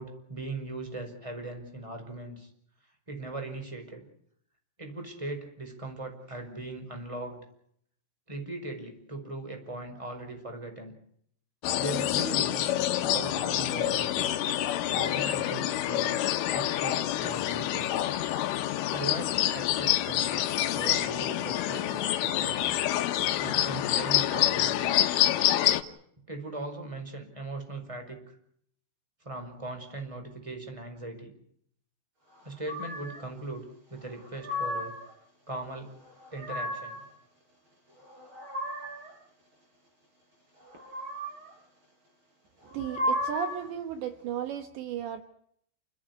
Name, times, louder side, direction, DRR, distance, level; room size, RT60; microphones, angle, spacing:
voice 1, 0.0-2.5 3.1-4.0 4.8-7.4 8.3-10.9 11.8-12.7 13.0-14.3 14.9-18.0 18.9-20.5 20.7-22.7 23.4-25.1 26.3-28.4 29.2-31.3 32.4-35.0 35.5-35.9 36.3-37.0, right 2 dB, 5° right, 5 dB, 4.7 m, -39 dB
sound 1, 11.6-25.8, left 13 dB, 85° left, 3.8 m, -27 dB
sound 2, 32.6-33.2 34.1-35.1 36.0-37.0 38.0-39.1 40.6-41.5 42.6-43.7, left 1 dB, 25° right, 6.5 m, -34 dB
voice 2, 42.7-45.2, right 9 dB, 70° right, 8 dB, 3.4 m, -34 dB
29.0 x 14.5 x 9.8 m, 0.68 s
omnidirectional pair, 5.5 m